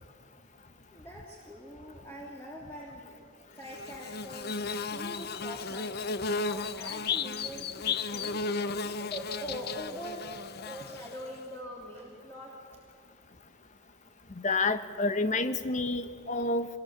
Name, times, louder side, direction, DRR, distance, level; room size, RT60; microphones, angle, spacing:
voice 1, 0.9-3.1 3.6-6.0 6.3-8.5 8.8-12.6, equal, 10° left, -4 dB, 3.3 m, -43 dB
Bird / Buzz, 3.7-11.4, left 4 dB, 55° left, 0.7 m, -34 dB
voice 2, 14.4-16.7, left 3 dB, 40° left, 11 dB, 1.1 m, -29 dB
25.0 x 21.5 x 8.5 m, 2.2 s
head